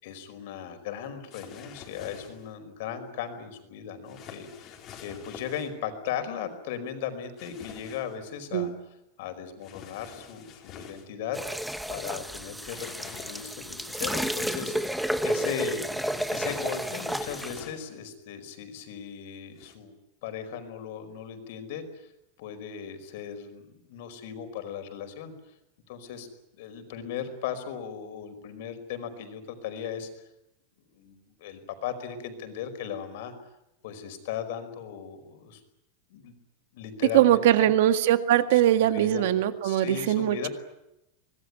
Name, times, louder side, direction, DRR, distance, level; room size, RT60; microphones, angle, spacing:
voice 1, 0.0-8.7 9.2-11.4 11.9-15.8 16.3-19.9 20.2-22.1 22.4-23.6 23.9-25.3 25.9-26.3 26.6-30.1 30.9-33.3 33.8-35.6 36.1-36.3 36.7-37.7 38.5-39.3 39.6-40.5, left 8 dB, 55° left, 8 dB, 5.1 m, -37 dB
sound 1, 1.3-2.5 4.1-5.7 7.4-8.2 9.6-11.1 12.6-13.7 16.1-18.0 19.5-19.7, left 7 dB, 25° left, 4.2 m, -46 dB
sound 2, 11.3-17.6, equal, ahead, 1.0 m, -31 dB
voice 2, 37.1-40.5, right 12 dB, 60° right, 10 dB, 1.9 m, -21 dB
25.0 x 20.5 x 9.7 m, 0.87 s
supercardioid pair, 175°, 0 cm